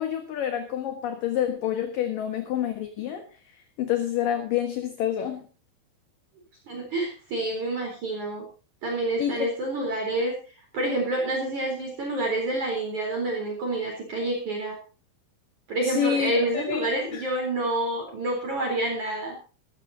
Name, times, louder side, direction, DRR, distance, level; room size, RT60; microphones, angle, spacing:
voice 1, 0.0-3.2 3.8-5.4 9.2-9.4 15.8-16.9 17.1-17.2, left 10 dB, 60° left, 6 dB, 2.6 m, -28 dB
voice 2, 6.7-8.5 8.8-10.4 10.7-14.8 15.7-19.4, right 1 dB, 40° right, 1 dB, 5.1 m, -28 dB
19.0 x 15.0 x 2.9 m, 0.35 s
omnidirectional pair, 5.5 m